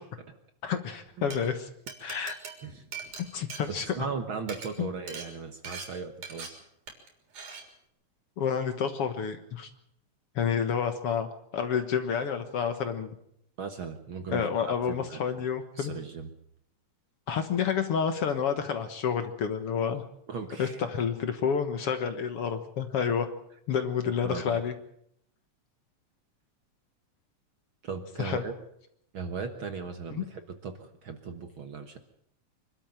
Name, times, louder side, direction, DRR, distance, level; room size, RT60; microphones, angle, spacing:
voice 1, 0.6-1.7 2.0-2.3 3.2-4.0 4.8-4.9 8.4-9.7 10.4-13.2 14.3-16.0 17.3-20.0 20.6-23.3 23.7-24.7 28.2-28.4 30.1-30.3, left 7 dB, 55° left, 8 dB, 2.0 m, -29 dB
Glass, 1.1-1.4 1.9-4.1 4.4-4.7 5.1-5.3 5.6-5.9 6.2-6.5 6.9-7.1 7.3-7.6, right 5 dB, 80° right, 5.0 m, -41 dB
voice 2, 3.7-6.6 13.6-15.5 15.8-16.3 20.3-20.8 24.2-24.6 27.8-28.5 29.1-32.0, right 5 dB, 50° right, 7 dB, 1.8 m, -37 dB
24.5 x 12.5 x 9.0 m, 0.74 s
omnidirectional pair, 3.4 m